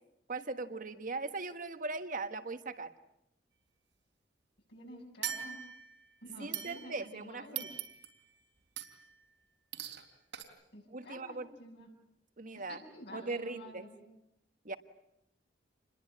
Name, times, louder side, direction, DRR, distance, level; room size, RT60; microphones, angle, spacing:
voice 1, 0.3-2.9 6.4-7.7 10.9-11.5 12.4-12.8 13.1-13.8 14.6-14.8, right 3 dB, 50° right, 10 dB, 1.4 m, -39 dB
voice 2, 4.7-5.6 6.2-7.7 10.7-11.9 12.7-14.0, left 1 dB, 65° left, -1 dB, 7.6 m, -50 dB
sound 1, 5.2-6.0 6.5-7.1 7.6-8.2 8.8-9.1 9.7-10.0 10.3-10.4, right 10 dB, 85° right, 3.6 m, -41 dB
28.0 x 21.5 x 8.6 m, 0.81 s
head